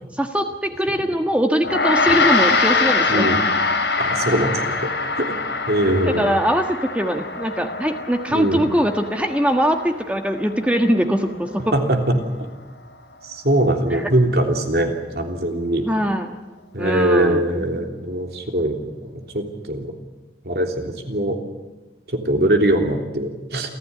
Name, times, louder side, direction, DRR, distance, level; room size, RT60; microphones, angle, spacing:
voice 1, 0.1-3.3 6.1-6.6 6.9-11.6 13.9-14.1 15.8-16.3 16.8-17.7, equal, 5° right, 4 dB, 1.5 m, -22 dB
Gong, 1.6-11.2, left 4 dB, 90° left, 4.1 m, -23 dB
voice 2, 4.0-4.8 5.2-5.3 5.7-6.3 8.3-8.7 11.7-12.0 12.4-12.5 13.2-15.9 16.7-19.9 20.4-21.4 22.2-23.7, right 1 dB, 65° right, 4 dB, 3.4 m, -21 dB
27.5 x 15.0 x 9.7 m, 1.2 s
head